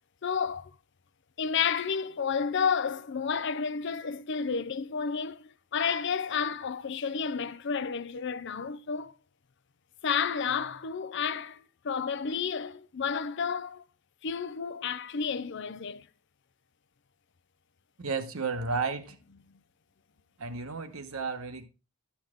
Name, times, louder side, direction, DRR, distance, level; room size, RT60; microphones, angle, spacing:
voice 1, 0.2-0.7 1.4-9.1 10.0-13.8 14.2-16.1, left 6 dB, 55° left, 0.5 m, -31 dB
voice 2, 18.0-19.2 20.4-21.6, right 4 dB, 75° right, 1.2 m, -33 dB
12.0 x 7.2 x 3.6 m
head